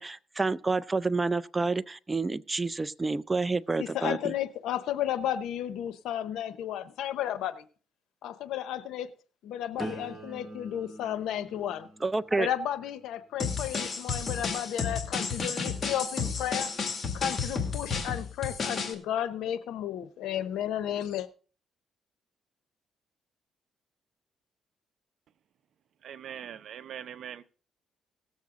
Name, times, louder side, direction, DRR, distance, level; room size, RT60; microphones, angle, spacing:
voice 1, 0.0-4.3 12.0-12.5, right 3 dB, 20° right, 17 dB, 0.5 m, -29 dB
voice 2, 3.8-7.7 8.2-9.1 9.4-11.9 12.4-16.7 17.1-21.3, left 10 dB, 85° left, 14 dB, 0.8 m, -33 dB
sound 1, 9.8-15.6 16.2-16.6, right 1 dB, ahead, 2.0 m, -46 dB
sound 2, 13.4-18.9, left 5 dB, 45° left, 2.1 m, -32 dB
voice 3, 26.0-27.4, right 9 dB, 65° right, 14 dB, 0.7 m, -41 dB
18.0 x 7.3 x 3.7 m, 0.39 s
cardioid pair, 90°, 0 cm